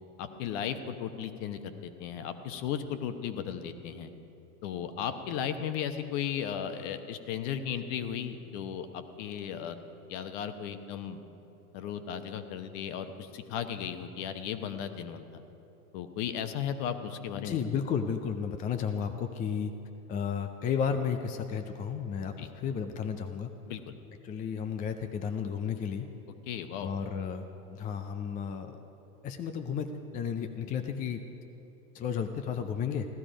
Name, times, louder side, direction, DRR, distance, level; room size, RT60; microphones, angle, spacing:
voice 1, 0.2-4.1 4.6-9.8 10.1-11.2 11.7-15.4 15.9-17.6 22.4-22.5 23.7-23.9 26.5-26.9, left 8 dB, 50° left, 9 dB, 1.1 m, -35 dB
voice 2, 17.4-19.7 20.1-23.5 24.2-26.1 26.8-28.8 29.2-31.2 31.9-33.1, left 7 dB, 20° left, 7 dB, 0.4 m, -33 dB
16.0 x 12.0 x 5.1 m, 3.0 s
hypercardioid pair, 110°, 46 cm